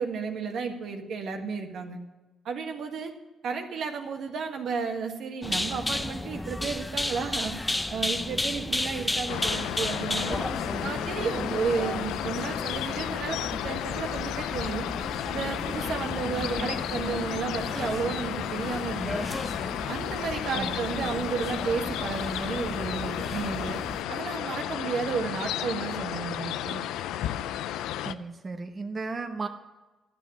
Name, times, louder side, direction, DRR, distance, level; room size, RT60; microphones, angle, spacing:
voice 1, 0.0-2.0 2.5-3.1 3.4-10.5 10.8-14.9 15.3-19.2 19.9-23.8 24.1-26.8, right 5 dB, 70° right, 4 dB, 1.6 m, -32 dB
sound 1, 5.4-24.0, left 1 dB, 15° left, 0.7 m, -34 dB
sound 2, 9.3-28.1, left 11 dB, 85° left, 0.4 m, -33 dB
voice 2, 16.2-16.8 20.6-21.3 28.0-29.5, right 3 dB, 35° right, 4 dB, 1.0 m, -36 dB
12.0 x 7.2 x 9.6 m, 1.2 s
supercardioid pair, 70°, 0 cm